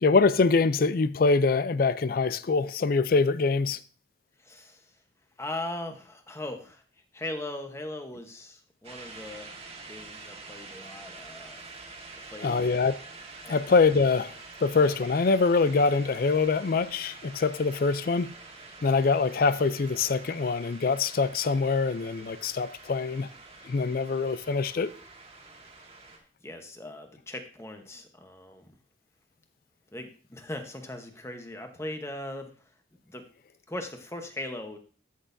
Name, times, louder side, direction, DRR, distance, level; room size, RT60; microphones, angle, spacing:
voice 1, 0.0-3.8 12.4-13.0 13.5-14.3 14.6-18.3 18.8-23.3 23.6-24.9, left 4 dB, 50° left, 0.4 m, -24 dB
voice 2, 4.4-4.9 5.4-6.8 7.1-9.5 9.9-11.6 12.3-12.7 13.4-13.6 26.4-28.7 29.9-32.5 33.1-33.2 33.7-34.8, left 1 dB, 15° left, 1.0 m, -39 dB
sound 1, 8.8-26.2, right 3 dB, 35° right, 1.6 m, -47 dB
13.5 x 6.3 x 2.6 m
head